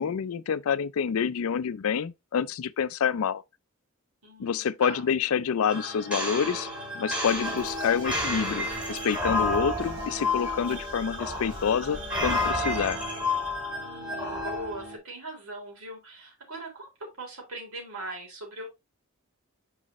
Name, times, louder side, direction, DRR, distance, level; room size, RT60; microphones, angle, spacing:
voice 1, 0.0-3.4 4.4-6.7 6.9-13.0, left 7 dB, 70° left, 0.4 m, -27 dB
voice 2, 4.2-5.1 13.7-18.7, right 2 dB, 75° right, 3.4 m, -40 dB
sound 1, 5.7-15.0, left 2 dB, 5° right, 3.9 m, -31 dB
Bird vocalization bird call bird song, 7.2-12.5, right 1 dB, 50° right, 3.6 m, -46 dB
6.4 x 4.9 x 3.0 m
head